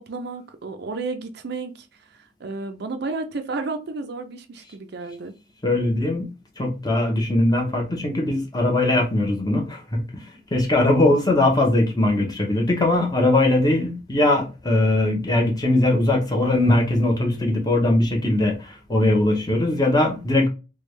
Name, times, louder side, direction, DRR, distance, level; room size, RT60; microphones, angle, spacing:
voice 1, 0.0-5.4, right 3 dB, 55° right, 0.5 m, -32 dB
voice 2, 5.6-6.3 6.6-10.2 10.5-20.5, left 2 dB, 20° left, 0.8 m, -20 dB
3.3 x 2.3 x 3.2 m
head